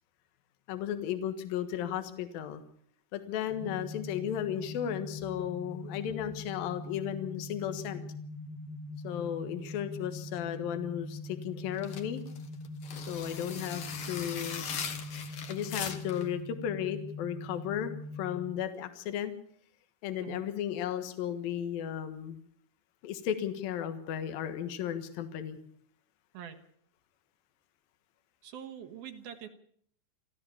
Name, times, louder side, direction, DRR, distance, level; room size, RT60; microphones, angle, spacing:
voice 1, 0.7-2.6 3.1-8.0 9.0-12.2 13.1-14.7 15.5-19.3 20.0-22.4 23.0-25.6, left 10 dB, 70° left, 9 dB, 3.1 m, -35 dB
sound 1, 3.5-18.5, left 2 dB, 35° left, 3.0 m, -42 dB
sound 2, 11.8-16.3, left 6 dB, 55° left, 1.7 m, -40 dB
voice 2, 28.4-29.5, right 9 dB, 70° right, 7 dB, 3.2 m, -44 dB
28.0 x 13.0 x 7.2 m, 0.63 s
omnidirectional pair, 4.6 m